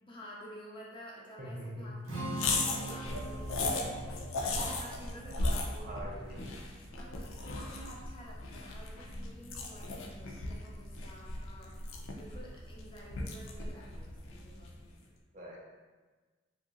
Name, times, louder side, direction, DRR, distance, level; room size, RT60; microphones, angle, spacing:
voice 1, 0.0-2.0 2.4-5.9 6.3-6.5 6.9-11.8 12.2-15.2, equal, 25° left, -4 dB, 0.4 m, -51 dB
voice 2, 1.4-1.9 5.8-6.5 7.5-7.7 15.3-15.8, equal, 35° right, -2 dB, 0.4 m, -44 dB
Strum, 2.0-8.3, right 2 dB, 85° right, 0.7 m, -44 dB
sound 1, 2.3-14.8, left 2 dB, 90° left, 0.4 m, -37 dB
2.9 x 2.8 x 2.4 m, 1.3 s
head